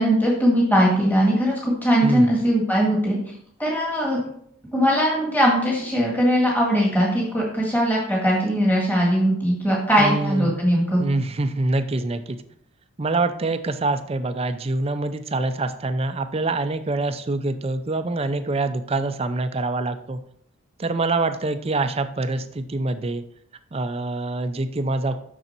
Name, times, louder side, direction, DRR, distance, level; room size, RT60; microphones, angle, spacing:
voice 1, 0.0-3.2 3.6-4.2 4.7-11.0, equal, 10° left, -3 dB, 1.9 m, -20 dB
voice 2, 2.0-2.3 10.0-10.5 11.0-12.4 13.0-20.2 20.8-23.2 23.7-25.2, right 2 dB, 25° right, 9 dB, 0.4 m, -25 dB
6.7 x 6.2 x 4.4 m, 0.68 s
head